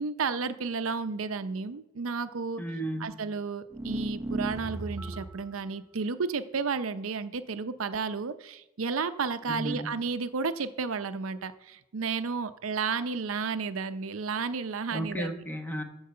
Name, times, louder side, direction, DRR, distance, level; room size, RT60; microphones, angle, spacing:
voice 1, 0.0-2.6 3.0-15.3, right 5 dB, 85° right, 11 dB, 0.6 m, -32 dB
voice 2, 2.6-3.1 9.5-9.9 14.9-15.8, equal, 10° left, 4 dB, 1.1 m, -33 dB
sound 1, 3.7-5.5, right 1 dB, 15° right, 0.6 m, -35 dB
13.5 x 4.7 x 6.6 m, 0.90 s
head